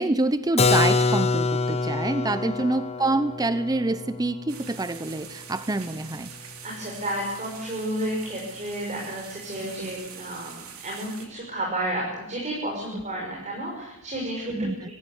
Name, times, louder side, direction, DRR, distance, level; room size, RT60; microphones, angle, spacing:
voice 1, 0.0-6.3 9.8-9.9 12.9-13.0 14.5-14.9, right 2 dB, 20° right, 12 dB, 0.7 m, -26 dB
Keyboard (musical), 0.6-6.2, left 3 dB, 30° left, 1.0 m, -26 dB
sound 1, 4.5-11.3, right 7 dB, 80° right, 3.5 m, -44 dB
voice 2, 6.6-14.9, right 1 dB, 35° right, -2 dB, 5.8 m, -32 dB
24.0 x 14.5 x 9.6 m, 0.96 s
head